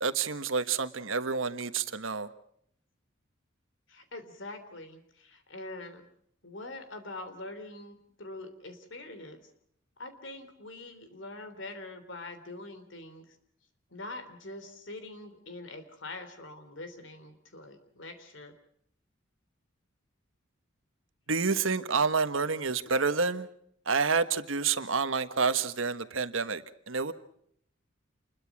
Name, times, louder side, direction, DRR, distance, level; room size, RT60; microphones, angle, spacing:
voice 1, 0.0-2.3 21.3-23.5 23.9-26.6 26.9-27.1, right 5 dB, 85° right, 1.3 m, -28 dB
voice 2, 3.9-6.0 6.4-9.5 10.0-13.3 13.9-18.5, left 2 dB, 65° left, 3.4 m, -44 dB
27.5 x 21.5 x 6.1 m
head